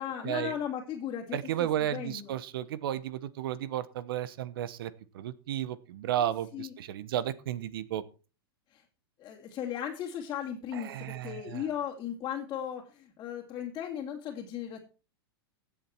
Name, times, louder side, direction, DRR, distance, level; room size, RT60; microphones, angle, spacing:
voice 1, 0.0-2.3 6.2-6.7 8.7-8.8 9.2-14.8, left 9 dB, 30° left, -2 dB, 2.6 m, -37 dB
voice 2, 1.3-8.0 10.7-11.6, right 11 dB, 70° right, 18 dB, 1.1 m, -33 dB
15.5 x 7.6 x 4.5 m, 0.35 s
hypercardioid pair, 120°, 13 cm